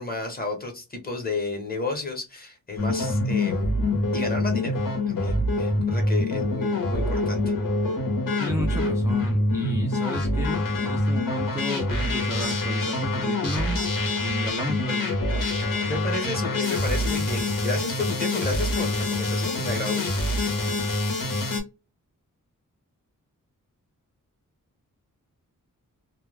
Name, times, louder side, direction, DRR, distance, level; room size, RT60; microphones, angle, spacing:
voice 1, 0.0-3.7 4.1-4.8 5.1-7.4 15.4-20.2, left 3 dB, 30° left, 0.9 m, -32 dB
sound 1, 2.8-21.6, left 2 dB, 85° left, 1.0 m, -25 dB
voice 2, 8.4-13.8 14.2-15.1, equal, 10° right, 0.3 m, -33 dB
2.2 x 2.2 x 3.2 m
wide cardioid pair, 160°, 33 cm